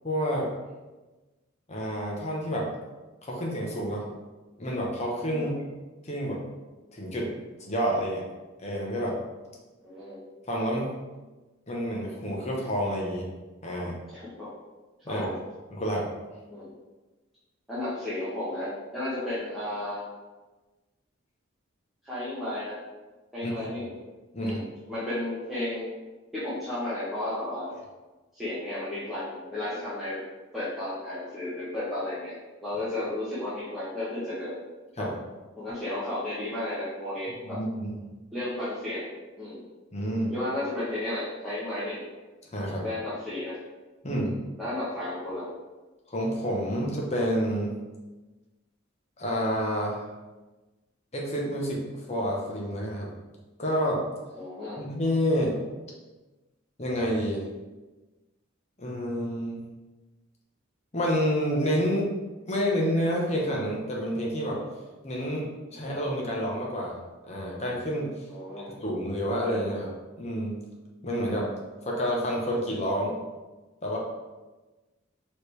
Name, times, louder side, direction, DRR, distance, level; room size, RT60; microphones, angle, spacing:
voice 1, 0.0-0.5 1.7-2.7 3.2-4.1 4.6-5.5 6.0-6.4 6.9-7.3 7.6-8.2 8.6-9.2 10.5-10.9 11.7-13.3 13.6-14.0 15.1-15.3 15.7-16.1 23.4-23.7 24.3-24.6 35.0-35.2 37.4-37.9 39.9-40.3 42.5-42.8 44.0-44.4 46.1-47.8 49.2-50.0 51.1-53.1 53.6-54.0 54.8-55.6 56.8-57.5 58.8-59.6 60.9-62.1 62.5-64.6 65.0-66.9 67.3-68.1 68.7-69.9 70.2-70.6 71.0-71.5 71.8-73.2 73.8-74.0, equal, 30° left, -3 dB, 0.9 m, -29 dB
voice 2, 9.8-10.2 14.1-14.5 15.1-15.3 16.5-16.7 17.7-20.1 22.0-22.8 23.3-23.9 24.4-25.9 26.3-27.7 28.3-30.2 30.5-32.3 32.6-34.6 35.0-35.1 35.6-37.6 38.3-39.1 39.4-39.6 40.3-42.0 42.8-43.6 44.2-45.4 54.3-54.8 68.3-68.7, left 1 dB, ahead, -13 dB, 1.0 m, -33 dB
4.9 x 3.2 x 3.2 m, 1.2 s
head